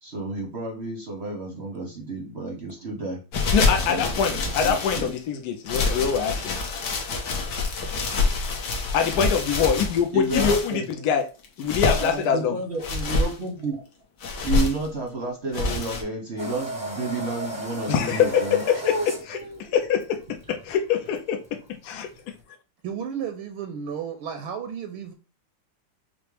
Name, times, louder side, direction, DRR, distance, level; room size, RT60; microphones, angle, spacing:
voice 1, 0.0-3.2 3.9-5.1 10.1-10.9 12.0-13.8 14.4-19.7, right 2 dB, 50° right, 0.8 m, -31 dB
sound 1, 3.3-5.2 5.7-10.7 11.4-12.2 12.8-13.3 14.2-14.9 15.5-16.0, left 3 dB, 60° left, 1.3 m, -26 dB
voice 2, 3.5-6.6 8.9-11.3 11.6-12.6 17.9-18.9 19.3-21.6 21.8-22.1, left 7 dB, 80° left, 0.8 m, -24 dB
sound 2, 16.4-22.4, right 2 dB, 5° right, 0.5 m, -36 dB
voice 3, 22.8-25.1, right 7 dB, 75° right, 1.4 m, -33 dB
5.8 x 2.1 x 3.2 m
omnidirectional pair, 2.4 m